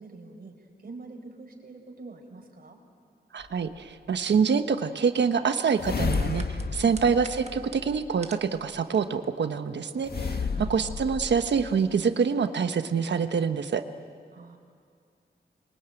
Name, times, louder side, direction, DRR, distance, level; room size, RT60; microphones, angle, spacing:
voice 1, 0.0-2.8 9.8-10.2 10.5-10.7 14.3-14.6, right 3 dB, 55° right, 3 dB, 4.8 m, -46 dB
voice 2, 3.3-10.1 10.7-13.8, right 6 dB, 80° right, 9 dB, 1.2 m, -26 dB
sound 1, 3.4-3.5 5.7-8.2 10.0-11.7, left 4 dB, 60° left, 1.7 m, -32 dB
sound 2, 6.1-8.5 8.8-9.3 9.7-9.8, right 4 dB, 40° right, 1.4 m, -45 dB
27.0 x 23.0 x 9.1 m, 2.2 s
wide cardioid pair, 85°, 18 cm